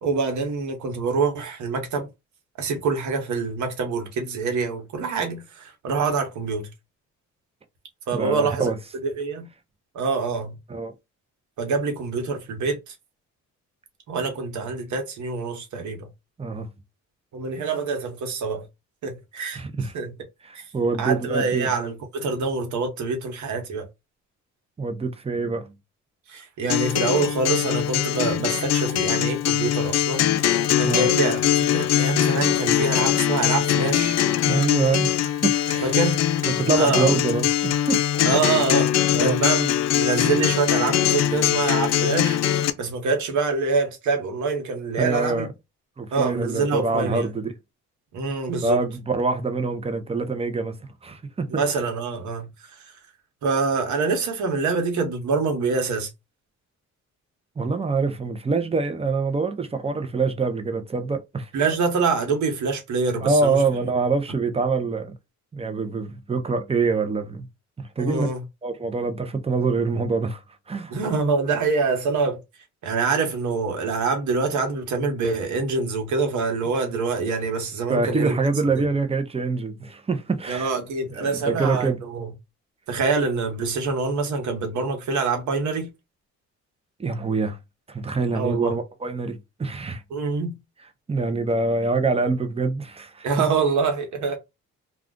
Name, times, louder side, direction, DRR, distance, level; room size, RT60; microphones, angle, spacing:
voice 1, 0.0-2.1 2.6-6.7 8.1-8.7 9.0-9.5 9.9-10.5 11.6-12.9 14.1-16.1 17.3-18.6 19.0-19.6 19.9-20.1 20.5-20.6 21.0-23.8 26.3-30.2 30.5-34.2 35.8-36.2 36.7-37.2 38.2-38.9 39.2-45.5 46.1-47.3 48.1-48.8 51.5-52.5 53.4-56.1 61.5-63.6 68.0-68.4 70.9-72.4 72.8-78.4 78.8-78.9 80.5-82.3 82.9-85.9 88.3-88.8 90.1-90.6 93.2-94.4, right 4 dB, 75° right, 1.1 m, -25 dB
voice 2, 8.1-8.8 10.7-10.9 16.4-16.7 19.5-19.9 20.4-21.7 24.8-25.7 30.8-31.1 34.5-36.0 36.5-38.1 39.1-39.4 45.0-45.5 46.0-47.5 48.6-50.8 51.0-51.8 57.6-61.5 63.2-65.1 65.5-67.5 67.8-68.3 68.6-70.4 70.7-70.9 77.9-80.7 81.1-82.0 87.0-87.6 87.9-90.0 91.1-93.3, right 4 dB, 20° right, 0.6 m, -25 dB
Acoustic guitar, 26.7-42.7, left 11 dB, 60° left, 0.5 m, -22 dB
2.4 x 2.4 x 3.6 m
cardioid pair, 90°, 30 cm